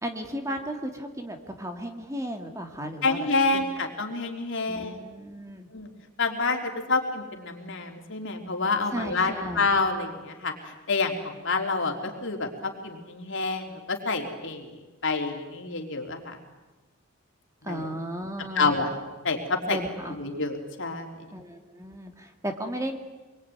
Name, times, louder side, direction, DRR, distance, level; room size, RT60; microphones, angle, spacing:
voice 1, 0.0-3.3 3.5-3.8 4.7-5.7 8.9-9.7 17.6-18.7 19.7-20.1 21.3-23.0, equal, 15° right, 4 dB, 2.2 m, -35 dB
voice 2, 3.0-5.0 5.7-5.9 6.2-6.6 6.9-10.5 10.9-11.9 12.2-14.7 15.0-16.4 17.7-17.9 18.6-18.9 19.2-19.8 20.2-21.1, left 3 dB, 60° left, 3 dB, 3.7 m, -28 dB
27.0 x 22.0 x 9.6 m, 1.2 s
head